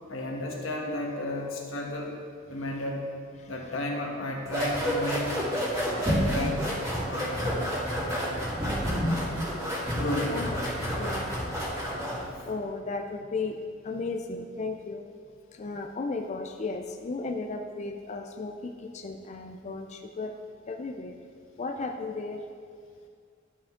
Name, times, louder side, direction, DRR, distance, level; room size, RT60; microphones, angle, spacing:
voice 1, 0.1-2.2 2.5-3.1 3.5-5.3 6.1-6.7 7.0-7.6 9.9-10.4 12.3-12.5, left 1 dB, 90° left, 0 dB, 1.4 m, -33 dB
voice 2, 3.4-3.7 10.3-10.6 11.0-11.4 12.4-13.6 13.8-15.1 15.5-20.3 20.7-21.2 21.6-22.4, left 3 dB, 35° left, 4 dB, 0.4 m, -35 dB
sound 1, 4.5-12.3, equal, 20° right, 2.2 m, -29 dB
12.5 x 5.1 x 3.7 m, 2.2 s
head